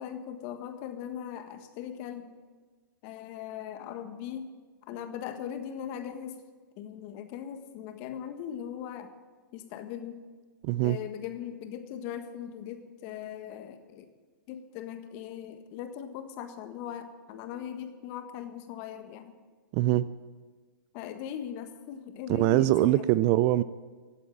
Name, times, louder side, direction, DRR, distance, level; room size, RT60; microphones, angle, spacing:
voice 1, 0.0-2.3 3.0-4.5 4.9-6.4 6.8-9.2 9.5-10.2 10.8-14.1 14.5-19.3 20.9-23.1, left 9 dB, 40° left, 7 dB, 1.5 m, -39 dB
voice 2, 10.6-11.0 19.7-20.1 22.3-23.6, right 15 dB, 35° right, 17 dB, 0.4 m, -23 dB
16.5 x 8.5 x 8.1 m, 1.4 s
hypercardioid pair, 130°, 11 cm